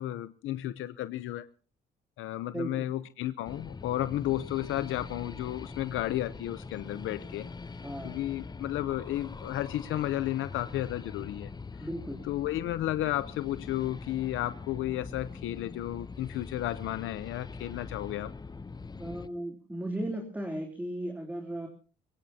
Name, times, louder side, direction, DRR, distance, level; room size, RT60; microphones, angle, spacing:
voice 1, 0.0-1.5 2.2-7.5 8.0-11.5 12.2-18.3, left 14 dB, 85° left, 13 dB, 0.7 m, -33 dB
voice 2, 2.5-2.9 7.8-8.2 11.8-12.3 19.0-21.7, right 1 dB, 10° right, 2 dB, 3.2 m, -36 dB
sound 1, 3.4-19.3, left 4 dB, 20° left, 0.7 m, -43 dB
22.5 x 20.0 x 2.8 m, 0.36 s
cardioid pair, 90°, 20 cm